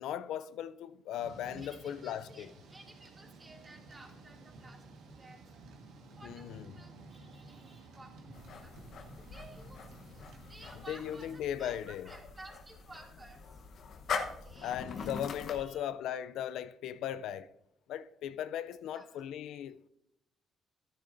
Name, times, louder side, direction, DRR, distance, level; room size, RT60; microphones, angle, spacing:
voice 1, 0.0-2.5 6.2-6.7 10.9-12.1 14.6-17.5 17.9-19.9, left 10 dB, 85° left, 0.3 m, -38 dB
Thunder / Rain, 1.2-11.4, right 2 dB, 90° right, 1.4 m, -53 dB
voice 2, 1.6-5.5 6.1-13.6 14.4-15.2 15.5-15.9 18.8-19.2, right 2 dB, 25° right, 2.2 m, -55 dB
sound 1, 8.3-15.7, left 5 dB, 65° left, 0.9 m, -42 dB
12.0 x 10.5 x 2.6 m
cardioid pair, 90°, 0 cm